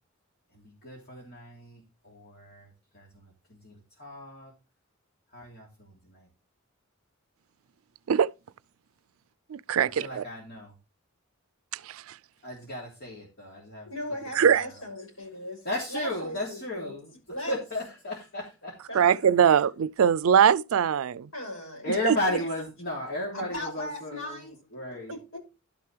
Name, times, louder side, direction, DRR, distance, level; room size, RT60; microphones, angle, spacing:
voice 1, 0.5-4.5 5.3-6.3 10.0-10.7 12.4-13.9 14.4-14.7 15.6-17.1 17.5-19.0 21.8-25.2, left 1 dB, 50° left, 3.3 m, -35 dB
voice 2, 9.5-10.2 11.7-12.2 14.3-14.7 18.9-21.3 22.0-22.2, right 8 dB, 90° right, 0.4 m, -22 dB
voice 3, 13.8-15.6 15.9-16.9 17.3-17.6 18.9-19.3 21.3-22.4 23.3-25.4, left 1 dB, 85° left, 6.7 m, -38 dB
12.0 x 6.7 x 3.3 m
head